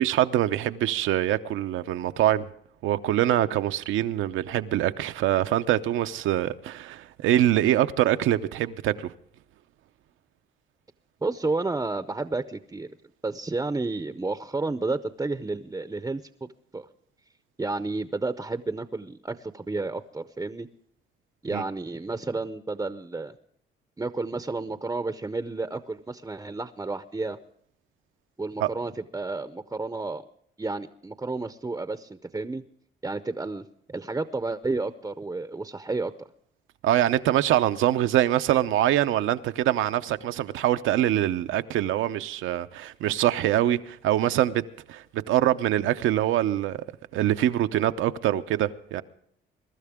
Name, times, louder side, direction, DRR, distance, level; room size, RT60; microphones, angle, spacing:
voice 1, 0.0-2.5 2.8-9.1 21.5-21.6 28.6-28.7 36.8-44.6 44.9-46.8 47.1-49.0, right 12 dB, 85° right, 0.7 m, -24 dB
voice 2, 11.2-12.9 13.2-16.5 16.7-16.9 17.6-20.7 21.4-23.3 24.0-27.4 28.4-30.2 30.6-32.6 33.0-36.3, right 3 dB, 15° right, 0.6 m, -31 dB
22.5 x 12.5 x 3.6 m
cardioid pair, 90°, 20 cm